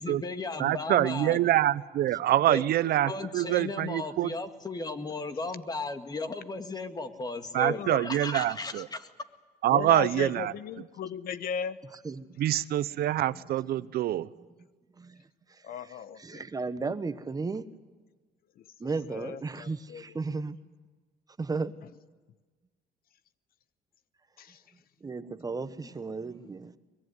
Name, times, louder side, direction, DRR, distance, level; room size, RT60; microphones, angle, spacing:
voice 1, 0.0-1.4 2.5-2.6 3.1-9.1, left 3 dB, 25° left, 8 dB, 2.0 m, -35 dB
voice 2, 0.6-4.3 7.5-8.9 9.6-10.5 12.4-14.3, right 13 dB, 65° right, 17 dB, 0.8 m, -25 dB
voice 3, 7.5-8.1 9.6-11.8 15.6-16.4 18.6-20.4 21.8-21.9 24.4-24.6, left 8 dB, 60° left, 15 dB, 1.0 m, -37 dB
voice 4, 16.2-17.7 18.8-20.6 21.4-21.7 25.0-26.7, right 4 dB, 20° right, 12 dB, 1.2 m, -34 dB
23.0 x 21.5 x 9.6 m, 1.3 s
cardioid pair, 110°, 17 cm